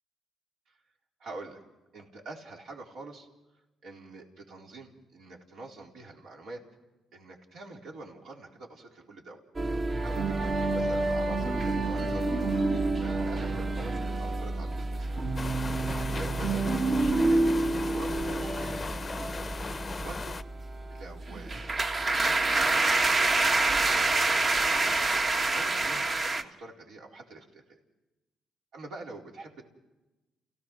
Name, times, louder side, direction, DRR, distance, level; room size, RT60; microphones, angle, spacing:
voice 1, 1.2-1.6 1.9-3.3 3.8-6.6 7.1-9.4 10.0-12.5 13.0-15.1 15.9-17.5 17.9-18.8 20.0-20.4 20.9-21.9 22.2-24.9 25.5-27.8 28.7-29.6, right 2 dB, 70° right, -1 dB, 4.3 m, -46 dB
sound 1, 9.6-26.4, right 2 dB, 40° right, 1.7 m, -28 dB
sound 2, 15.4-20.4, left 4 dB, 30° left, 0.7 m, -38 dB
29.0 x 17.0 x 6.2 m, 1.1 s
cardioid pair, 90°, 0 cm